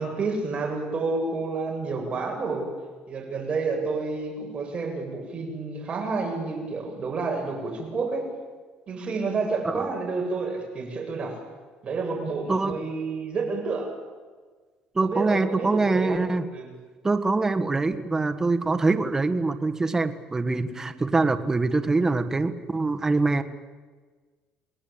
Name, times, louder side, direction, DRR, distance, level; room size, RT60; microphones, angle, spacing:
voice 1, 0.0-2.7 3.1-8.3 8.9-11.4 11.8-13.9 15.0-16.2 16.5-16.7 20.7-21.0, right 4 dB, 35° right, 1 dB, 7.8 m, -29 dB
voice 2, 14.9-16.5 17.0-23.4, right 3 dB, 15° right, 7 dB, 1.6 m, -24 dB
29.5 x 19.5 x 8.8 m, 1.4 s
cardioid pair, 135°, 3 cm